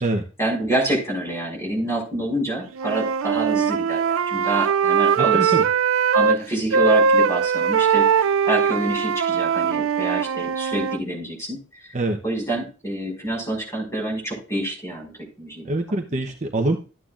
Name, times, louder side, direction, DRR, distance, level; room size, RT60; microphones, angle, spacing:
voice 1, 0.4-5.5 6.1-12.0 12.2-15.1 15.4-15.7 16.1-16.2, right 1 dB, 15° left, 0 dB, 5.2 m, -27 dB
Wind instrument woodwind instrument, 2.8-6.4 6.7-11.0, right 6 dB, 80° right, 0.4 m, -20 dB
voice 2, 5.2-5.6 11.9-12.2 15.6-16.8, right 2 dB, 35° right, 4 dB, 0.8 m, -24 dB
13.5 x 9.3 x 2.5 m, 0.34 s
head